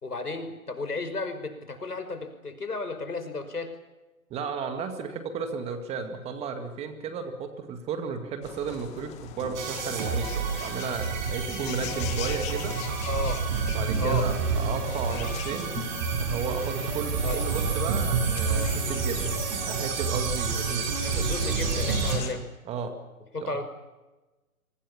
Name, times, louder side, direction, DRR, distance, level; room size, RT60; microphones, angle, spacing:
voice 1, 0.0-3.7 13.1-13.4 14.0-14.3 17.2-17.4 21.0-22.4 23.3-23.6, left 3 dB, 85° left, 9 dB, 5.6 m, -33 dB
voice 2, 4.3-12.7 13.6-15.8 16.2-20.9 22.2-23.0 23.4-23.6, right 5 dB, 15° right, 7 dB, 2.0 m, -34 dB
sound 1, 8.4-22.3, left 10 dB, 15° left, 1.6 m, -41 dB
sound 2, 9.5-22.2, right 5 dB, 30° right, 7.7 m, -28 dB
26.5 x 24.5 x 7.2 m, 1.1 s
figure-of-eight pair, 145°, 45 cm